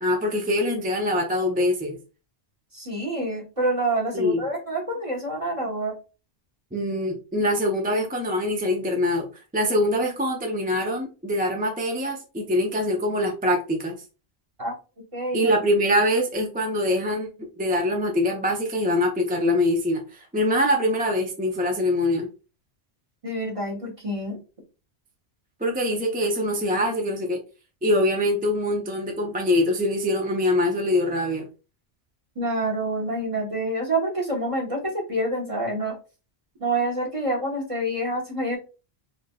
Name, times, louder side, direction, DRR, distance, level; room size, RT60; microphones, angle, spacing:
voice 1, 0.0-2.0 4.1-4.4 6.7-9.3 9.5-13.9 15.3-17.3 17.6-22.3 25.6-27.4 27.8-31.5, left 1 dB, 10° right, 1 dB, 0.4 m, -24 dB
voice 2, 2.7-5.9 14.6-14.7 15.1-15.5 23.2-24.4 32.3-36.0 36.6-38.6, right 1 dB, 30° right, -1 dB, 1.2 m, -27 dB
3.8 x 3.2 x 2.2 m, 0.32 s
omnidirectional pair, 1.1 m